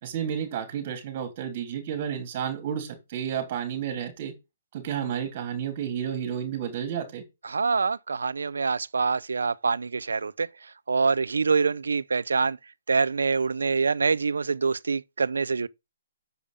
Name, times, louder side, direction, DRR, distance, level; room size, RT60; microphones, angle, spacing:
voice 1, 0.0-4.3 4.7-7.2, right 8 dB, 40° right, 3.0 m, -31 dB
voice 2, 7.4-12.6 12.9-15.7, right 4 dB, 85° right, 0.5 m, -25 dB
7.0 x 5.1 x 6.7 m
hypercardioid pair, 155°, 0 cm